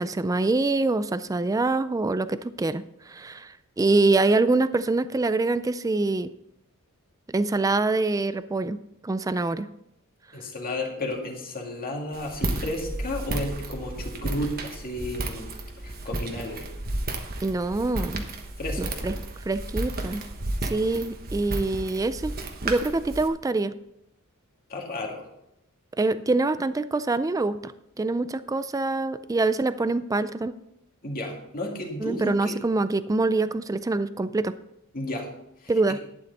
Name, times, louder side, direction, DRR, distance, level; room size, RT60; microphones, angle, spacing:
voice 1, 0.0-6.3 7.3-8.8 9.0-9.7 17.4-18.3 18.8-19.1 19.5-20.2 20.6-22.4 22.6-23.7 26.0-27.7 28.0-30.5 32.0-34.5 35.7-36.0, right 3 dB, 15° right, 13 dB, 0.3 m, -25 dB
voice 2, 10.3-16.7 18.6-19.0 24.7-25.3 31.0-32.6 34.9-35.3 35.6-36.0, left 1 dB, 40° left, 0 dB, 2.3 m, -33 dB
Walk footsteps, 12.1-23.3, right 2 dB, 45° right, 1.2 m, -33 dB
11.5 x 9.5 x 4.0 m, 0.83 s
head